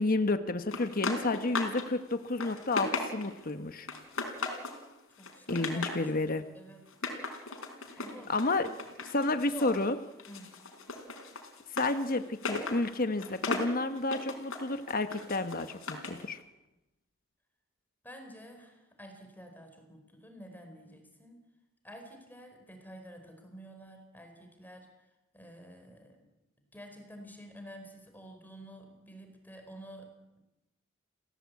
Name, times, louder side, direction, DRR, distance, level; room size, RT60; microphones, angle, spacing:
voice 1, 0.0-3.9 5.5-6.5 8.3-8.7 9.1-10.0 11.7-16.4, left 2 dB, 45° left, 9 dB, 1.2 m, -30 dB
sound 1, 0.7-1.9 2.2-3.4 3.9-4.8 5.2-6.0 6.9-9.9 10.2-16.2, left 3 dB, 85° left, 4.4 m, -37 dB
voice 2, 5.1-5.9 6.3-6.9 8.0-8.9 9.3-9.8 10.3-10.6 18.0-21.5 21.8-24.9 25.3-26.3 26.7-30.4, equal, 10° left, 4 dB, 4.6 m, -50 dB
29.0 x 17.0 x 8.4 m, 0.99 s
head